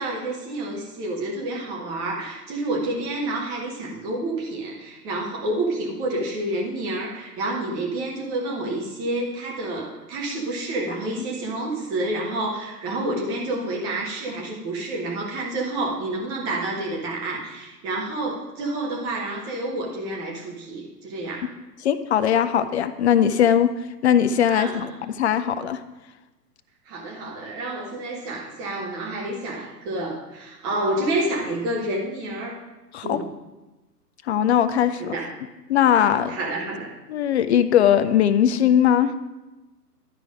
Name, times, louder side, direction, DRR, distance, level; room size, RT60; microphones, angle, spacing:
voice 1, 0.0-21.5 24.5-24.8 26.9-32.6 33.0-33.3 35.0-35.3 36.3-36.9, right 2 dB, 10° right, -1 dB, 0.5 m, -29 dB
voice 2, 21.8-25.8 32.9-33.2 34.3-35.2 35.7-36.4 37.1-39.1, left 9 dB, 45° left, 12 dB, 0.5 m, -20 dB
11.5 x 4.7 x 5.1 m, 1.1 s
hypercardioid pair, 125°, 49 cm